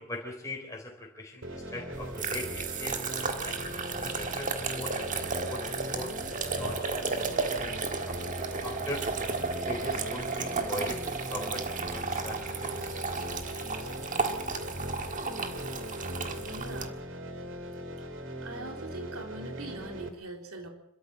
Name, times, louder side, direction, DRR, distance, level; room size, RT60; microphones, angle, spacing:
voice 1, 0.0-5.6 5.9-6.1 6.5-7.8 8.1-8.2 8.6-13.9, left 1 dB, 15° left, -1 dB, 3.9 m, -41 dB
sound 1, 1.4-20.1, equal, 60° right, 2.6 m, -39 dB
sound 2, 1.9-16.9, right 4 dB, 35° right, 1.7 m, -34 dB
voice 2, 16.4-17.1 18.4-20.7, right 2 dB, 85° right, 3 dB, 3.7 m, -42 dB
26.0 x 13.5 x 7.8 m, 0.75 s
head